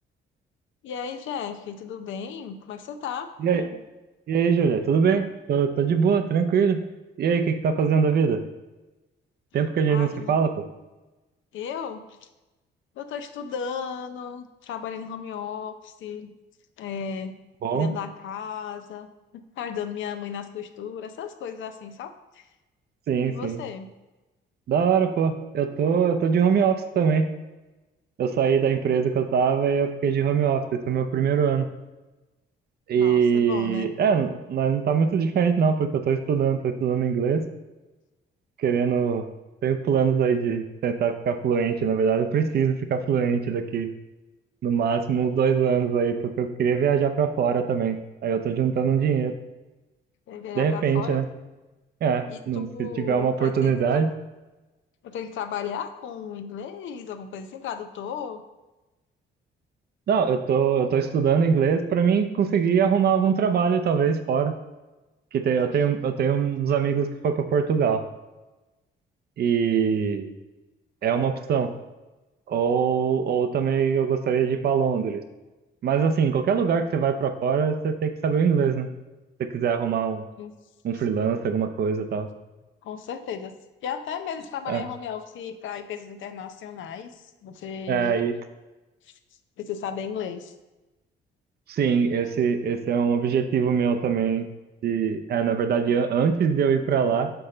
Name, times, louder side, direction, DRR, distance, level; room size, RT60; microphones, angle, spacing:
voice 1, 0.8-3.3 9.9-10.4 11.5-12.1 13.0-16.3 16.8-17.4 17.7-19.1 19.3-22.5 23.2-23.9 33.0-33.9 50.3-51.2 52.3-54.0 55.0-58.4 80.4-80.5 82.8-83.5 83.8-88.1 89.6-90.5, left 7 dB, 75° left, 8 dB, 0.6 m, -35 dB
voice 2, 3.4-3.8 4.3-6.8 7.2-8.4 9.5-10.5 17.6-17.9 23.1-23.6 24.7-27.3 28.2-31.7 32.9-37.4 38.6-39.3 39.6-43.9 44.6-49.3 50.5-51.3 52.0-54.1 60.1-64.5 65.3-68.0 69.4-70.3 71.0-71.7 72.5-75.2 75.8-78.9 79.4-80.2 80.8-82.3 84.7-84.8 87.9-88.3 91.7-94.5 94.8-97.3, right 6 dB, 55° right, 8 dB, 0.5 m, -23 dB
6.8 x 4.2 x 3.8 m, 1.1 s
cardioid pair, 90°, 20 cm